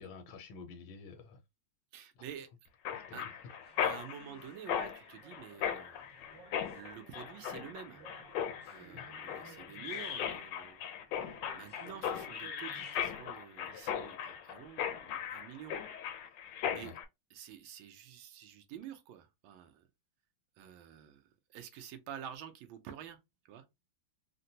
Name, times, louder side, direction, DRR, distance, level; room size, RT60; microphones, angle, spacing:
voice 1, 0.0-1.4 2.2-2.3 2.9-3.3 8.9-9.0 16.8-17.0, left 5 dB, 90° left, 1.5 m, -49 dB
voice 2, 1.9-2.5 3.1-3.2 3.8-6.0 6.7-8.0 8.7-10.8 11.2-15.8 16.7-17.0 17.3-19.8 20.6-23.2 23.5-23.6, right 9 dB, 80° right, 1.4 m, -49 dB
Mechanisms, 2.9-17.1, left 9 dB, 75° left, 1.2 m, -38 dB
sound 1, 3.6-10.6 11.1-13.0, right 3 dB, 25° right, 1.0 m, -58 dB
3.9 x 2.2 x 2.6 m
omnidirectional pair, 2.2 m